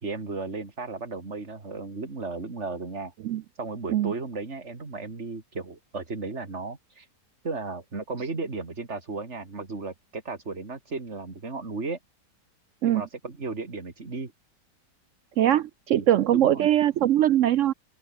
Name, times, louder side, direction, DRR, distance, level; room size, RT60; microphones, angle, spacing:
voice 1, 0.0-3.1 3.5-7.1 7.4-12.0 12.8-14.3 15.9-16.1 16.3-16.6, right 3 dB, 40° right, 3.0 m, -35 dB
voice 2, 15.4-17.7, right 11 dB, 70° right, 0.7 m, -21 dB
open air
omnidirectional pair, 1.8 m